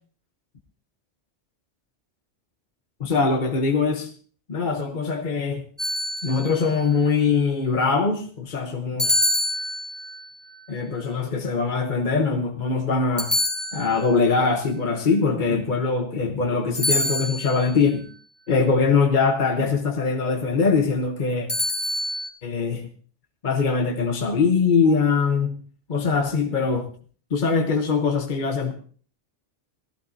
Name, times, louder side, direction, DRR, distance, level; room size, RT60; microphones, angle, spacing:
voice 1, 3.0-4.1 4.5-5.6 6.2-9.2 10.7-13.3 13.7-18.1 18.5-21.5 22.4-22.9 23.4-25.6 25.9-26.9 27.3-28.7, left 4 dB, 45° left, 4 dB, 1.1 m, -22 dB
sound 1, 5.8-6.7 9.0-10.2 13.2-14.2 16.7-17.7 21.5-22.3, left 1 dB, 10° left, 2.1 m, -26 dB
17.5 x 14.5 x 2.7 m, 0.43 s
omnidirectional pair, 1.2 m